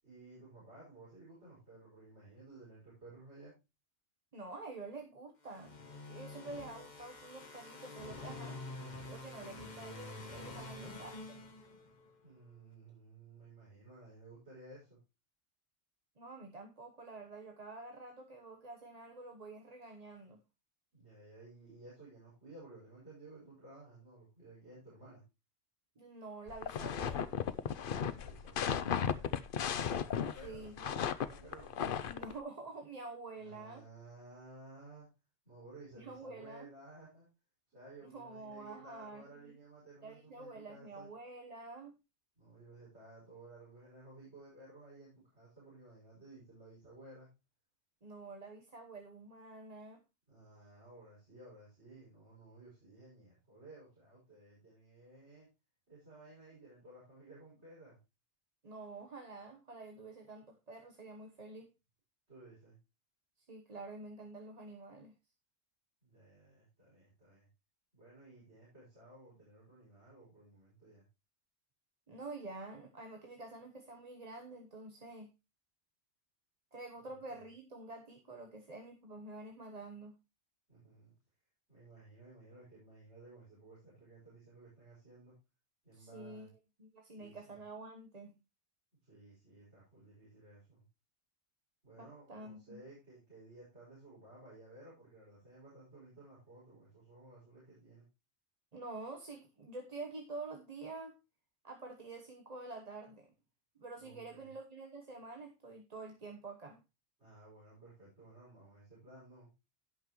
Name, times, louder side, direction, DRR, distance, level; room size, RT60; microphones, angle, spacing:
voice 1, 0.0-3.5 12.2-15.0 20.9-25.2 28.1-29.4 30.1-32.0 33.4-35.1 35.4-37.3 37.7-41.1 42.4-47.3 50.3-55.5 55.9-58.0 62.3-62.8 66.0-67.5 67.9-71.0 77.0-77.3 80.7-81.1 81.7-85.3 85.8-86.5 87.1-87.6 89.0-90.8 91.8-98.1 104.0-104.5 107.2-109.5, right 2 dB, 70° right, -7 dB, 6.4 m, -56 dB
voice 2, 4.3-8.6 9.1-11.4 16.2-20.4 26.0-27.4 30.4-30.7 31.8-33.8 36.0-36.7 38.0-39.2 40.0-41.9 48.0-50.0 58.6-61.7 63.4-65.1 72.1-75.3 76.7-80.1 85.9-86.5 86.8-88.3 92.0-92.8 98.7-101.2 101.6-103.3 103.7-106.8, right 3 dB, 35° right, 3 dB, 1.2 m, -48 dB
sound 1, 5.5-12.1, left 2 dB, 40° left, 1.5 m, -48 dB
sound 2, 26.5-32.3, left 8 dB, 55° left, 0.8 m, -35 dB
17.0 x 5.8 x 3.0 m, 0.26 s
omnidirectional pair, 1.2 m